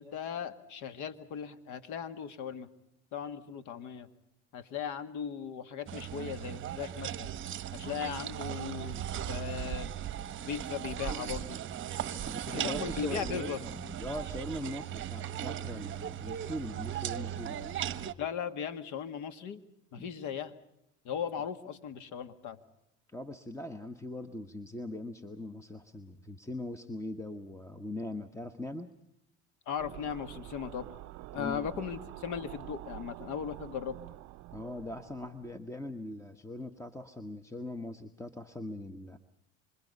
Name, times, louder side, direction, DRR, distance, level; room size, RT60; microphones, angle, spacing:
voice 1, 0.0-2.7 3.1-4.1 4.5-7.3 7.7-9.0 9.3-9.9 10.4-11.6 12.5-13.6 18.2-19.6 19.9-20.6 21.1-22.6 29.7-30.9 31.3-34.0, left 7 dB, 60° left, 11 dB, 2.1 m, -38 dB
sound 1, 5.9-18.1, right 10 dB, 35° right, 1.2 m, -37 dB
voice 2, 12.2-17.8 20.0-20.1 23.1-28.9 31.3-31.8 34.5-39.2, left 1 dB, 10° left, 9 dB, 1.4 m, -41 dB
sound 2, 29.8-35.5, right 16 dB, 55° right, 0.9 m, -47 dB
27.5 x 26.0 x 5.5 m, 0.82 s
hypercardioid pair, 85°, 34 cm